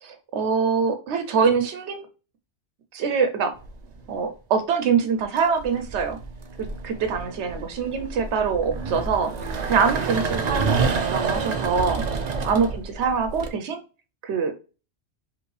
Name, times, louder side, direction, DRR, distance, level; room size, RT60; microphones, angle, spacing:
voice 1, 0.0-2.1 2.9-3.5 4.1-6.2 6.6-12.0 12.4-13.8 14.2-14.6, right 6 dB, 85° right, 7 dB, 1.0 m, -24 dB
sound 1, 3.6-4.1 5.2-13.5, right 4 dB, 50° right, 0.6 m, -28 dB
5.1 x 2.9 x 3.2 m, 0.34 s
omnidirectional pair, 1.1 m